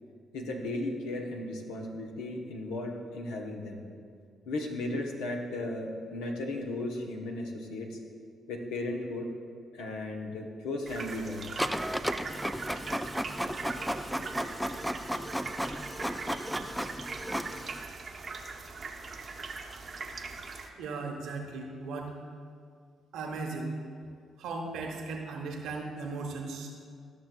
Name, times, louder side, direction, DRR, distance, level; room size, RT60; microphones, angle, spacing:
voice 1, 0.3-3.8 4.4-8.0 8.5-9.3 9.7-11.6, left 2 dB, 80° left, 1 dB, 0.9 m, -35 dB
sound 1, 10.9-20.7, right 4 dB, 45° right, 0.8 m, -41 dB
Printer, 11.6-17.8, equal, ahead, 0.4 m, -34 dB
voice 2, 20.8-22.1 23.1-23.7 24.4-26.7, right 3 dB, 70° right, 1 dB, 1.0 m, -37 dB
13.5 x 6.1 x 2.3 m, 2.2 s
hypercardioid pair, 45°, 0 cm